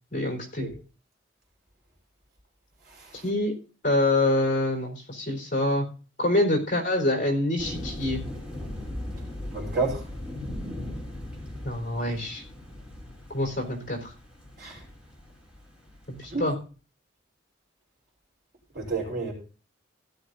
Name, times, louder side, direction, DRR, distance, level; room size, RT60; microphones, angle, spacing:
voice 1, 0.1-0.7 3.2-3.5 3.8-5.9 6.2-8.2 11.6-12.4 13.3-14.1 16.1-16.6, left 1 dB, 45° left, 4.1 m, -26 dB
voice 2, 2.9-3.2 9.5-10.0 14.6-14.8 16.3-16.5 18.7-19.3, right 3 dB, 55° right, 3.8 m, -30 dB
sound 1, 7.6-16.5, left 1 dB, 5° right, 3.1 m, -38 dB
16.0 x 10.5 x 2.7 m
head